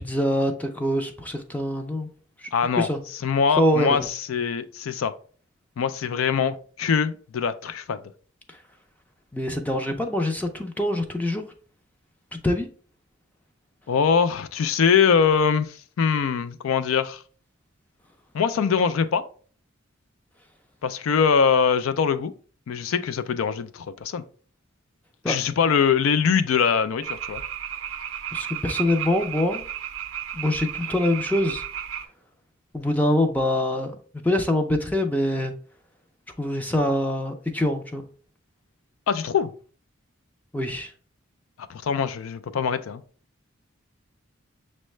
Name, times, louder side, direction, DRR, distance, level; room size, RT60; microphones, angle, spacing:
voice 1, 0.0-2.1 2.4-2.5 2.8-3.0 3.6-4.1 9.3-11.4 12.4-12.7 25.2-25.4 28.3-29.6 30.3-31.6 32.7-34.0 34.2-35.5 36.4-38.0 40.5-40.9, left 1 dB, 10° left, 0.4 m, -24 dB
voice 2, 2.5-2.9 3.2-5.1 5.8-8.0 13.9-17.2 18.3-19.2 20.8-22.3 22.7-24.2 25.3-27.4 39.1-39.5 41.7-43.0, left 6 dB, 80° left, 0.4 m, -23 dB
sound 1, 27.0-32.1, right 10 dB, 75° right, 0.5 m, -33 dB
6.3 x 2.1 x 3.1 m
head